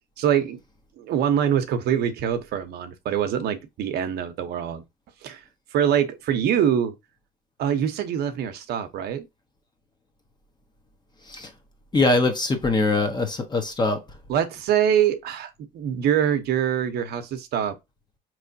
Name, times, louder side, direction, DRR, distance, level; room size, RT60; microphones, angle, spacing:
voice 1, 0.2-0.6 1.0-4.8 5.2-5.4 5.7-6.9 7.6-9.3 14.3-17.8, right 9 dB, 70° right, 0.8 m, -24 dB
voice 2, 11.9-14.0, left 2 dB, 25° left, 1.0 m, -22 dB
4.8 x 3.1 x 2.6 m
cardioid pair, 110°, 17 cm